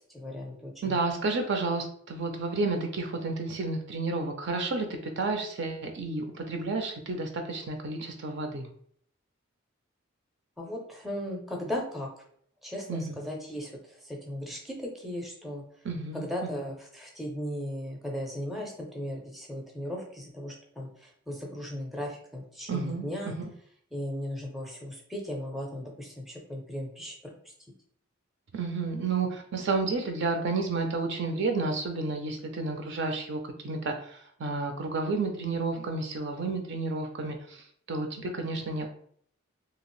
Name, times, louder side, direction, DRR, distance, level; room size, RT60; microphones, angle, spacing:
voice 1, 0.1-0.9 10.6-12.1 12.6-15.6 16.1-23.3 23.9-27.3, equal, ahead, 0 dB, 0.5 m, -37 dB
voice 2, 0.8-8.7 12.9-13.1 15.8-16.5 22.7-23.5 28.5-38.9, right 3 dB, 60° right, 4 dB, 0.5 m, -31 dB
2.8 x 2.4 x 3.0 m, 0.62 s
head